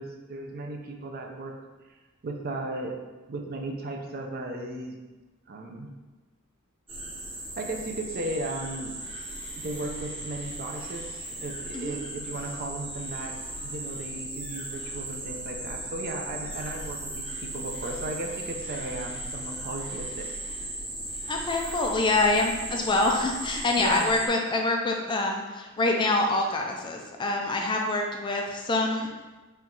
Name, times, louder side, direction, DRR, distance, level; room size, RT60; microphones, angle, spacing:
voice 1, 0.0-2.0 2.2-2.9 3.3-5.0 5.5-5.9 7.6-9.0 9.5-20.3 20.6-20.7 23.8-24.1, right 2 dB, 45° right, 2 dB, 0.5 m, -36 dB
sound 1, 6.9-24.3, right 1 dB, 25° right, 0.8 m, -37 dB
voice 2, 21.3-29.1, left 2 dB, 20° left, 1 dB, 0.3 m, -26 dB
4.4 x 2.3 x 3.8 m, 1.2 s
head